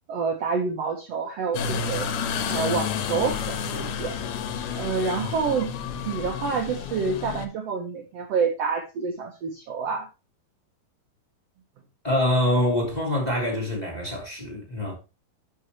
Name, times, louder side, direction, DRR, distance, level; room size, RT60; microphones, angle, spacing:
voice 1, 0.1-2.1 2.5-4.2 4.7-5.7 6.1-10.1, right 5 dB, 75° right, 1.4 m, -28 dB
sound 1, 1.5-7.5, left 6 dB, 75° left, 2.9 m, -30 dB
voice 2, 12.0-14.9, left 1 dB, 10° left, 2.3 m, -25 dB
11.5 x 6.3 x 3.0 m
omnidirectional pair, 4.6 m